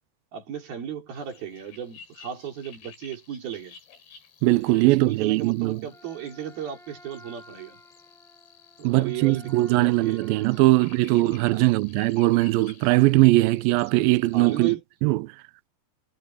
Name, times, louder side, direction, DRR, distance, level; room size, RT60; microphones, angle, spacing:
voice 1, 0.3-3.8 4.7-7.8 8.8-10.2 11.5-11.6 14.3-14.8, right 9 dB, 65° right, 5.4 m, -35 dB
sound 1, 1.2-14.7, left 7 dB, 80° left, 8.0 m, -52 dB
voice 2, 4.4-5.9 8.8-14.8 15.0-15.3, right 19 dB, 80° right, 2.2 m, -20 dB
Wind instrument woodwind instrument, 5.9-10.8, equal, ahead, 7.4 m, -52 dB
omnidirectional pair, 4.7 m